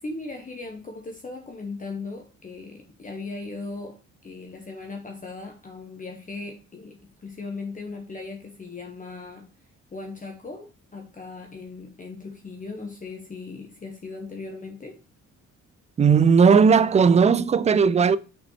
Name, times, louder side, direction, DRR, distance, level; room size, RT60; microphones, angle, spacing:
voice 1, 0.0-4.0 4.2-9.5 9.9-15.0, left 3 dB, 25° left, 1.0 m, -38 dB
voice 2, 16.0-18.2, right 6 dB, 25° right, 0.3 m, -17 dB
6.0 x 4.2 x 4.2 m
cardioid pair, 90°, 30 cm